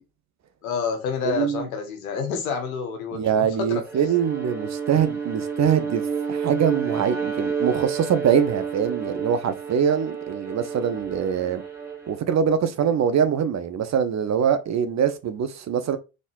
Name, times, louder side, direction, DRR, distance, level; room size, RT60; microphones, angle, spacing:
voice 1, 0.6-3.8, left 6 dB, 85° left, 1.4 m, -28 dB
voice 2, 1.2-1.7 3.1-11.6 12.1-16.0, right 8 dB, 40° right, 0.9 m, -23 dB
Bowed string instrument, 3.9-12.2, right 6 dB, 5° right, 2.0 m, -30 dB
4.1 x 3.8 x 2.6 m
hypercardioid pair, 70°, 41 cm